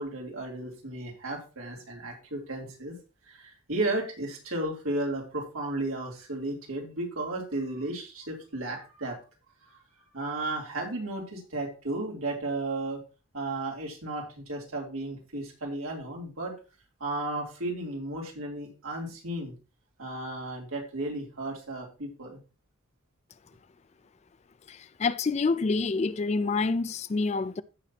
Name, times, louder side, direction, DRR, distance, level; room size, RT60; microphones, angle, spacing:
voice 1, 0.0-3.0 3.3-9.2 9.7-9.8 10.1-13.0 13.3-16.6 17.0-19.5 20.0-22.4, right 2 dB, 85° right, 3.1 m, -34 dB
voice 2, 24.7-27.6, left 4 dB, 30° left, 0.3 m, -27 dB
16.0 x 5.9 x 2.9 m
head